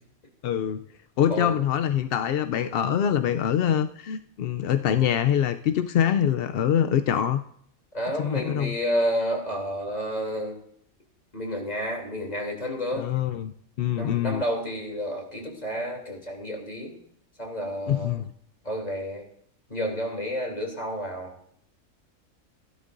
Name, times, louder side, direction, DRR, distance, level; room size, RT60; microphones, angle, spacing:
voice 1, 0.4-0.8 1.2-7.4 8.2-8.8 12.9-14.4 17.9-18.3, left 9 dB, 65° left, 9 dB, 0.6 m, -24 dB
voice 2, 7.9-10.6 11.3-13.0 13.9-16.9 17.4-18.2 18.6-19.3 19.7-21.3, equal, 30° left, 0 dB, 3.0 m, -30 dB
16.0 x 12.0 x 2.6 m, 0.66 s
omnidirectional pair, 1.5 m